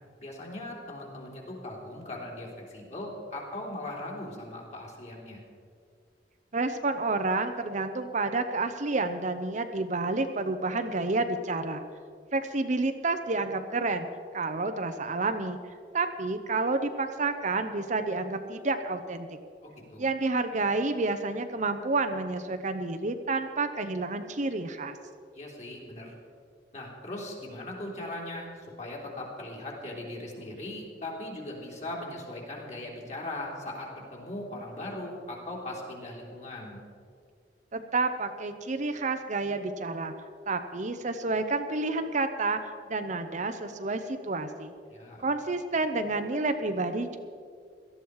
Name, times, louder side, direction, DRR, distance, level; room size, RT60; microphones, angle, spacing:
voice 1, 0.2-5.4 19.6-20.1 25.3-26.1 26.7-36.8 44.9-45.2, left 1 dB, 40° left, -1 dB, 3.4 m, -39 dB
voice 2, 6.5-11.8 12.3-14.1 14.3-15.6 15.9-19.3 20.0-25.0 37.7-40.1 40.5-42.6 42.9-44.7 45.2-47.2, right 3 dB, 45° right, 8 dB, 0.8 m, -29 dB
17.5 x 13.0 x 4.8 m, 2.2 s
head